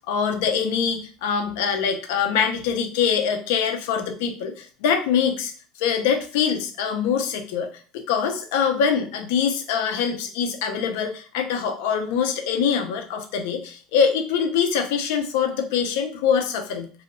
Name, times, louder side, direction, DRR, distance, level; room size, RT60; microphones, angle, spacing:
voice 1, 0.1-5.5 5.8-16.9, left 7 dB, 70° left, 5 dB, 0.6 m, -24 dB
3.0 x 2.7 x 2.5 m, 0.41 s
cardioid pair, 180°, 0 cm